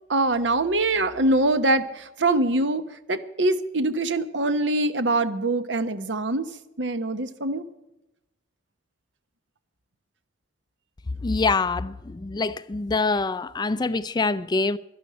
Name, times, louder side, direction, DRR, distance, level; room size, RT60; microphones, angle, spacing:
voice 1, 0.1-7.6, right 2 dB, 75° right, 1.1 m, -24 dB
voice 2, 11.2-14.8, left 3 dB, 25° left, 0.4 m, -25 dB
12.5 x 11.5 x 7.5 m
head